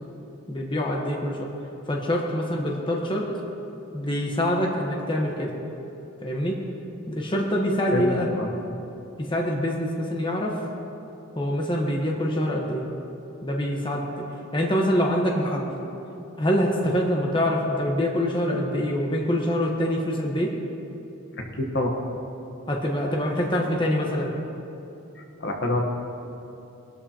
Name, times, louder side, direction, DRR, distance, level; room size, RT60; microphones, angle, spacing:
voice 1, 0.5-1.5 1.9-3.3 3.9-5.5 6.2-6.6 7.1-8.3 9.2-10.6 11.4-12.8 13.4-14.3 14.5-15.7 16.4-20.5 22.7-24.3, equal, 20° left, 0 dB, 1.1 m, -25 dB
voice 2, 21.4-21.9 25.1-25.8, left 1 dB, 50° left, 1 dB, 1.1 m, -27 dB
19.5 x 12.5 x 2.9 m, 2.8 s
head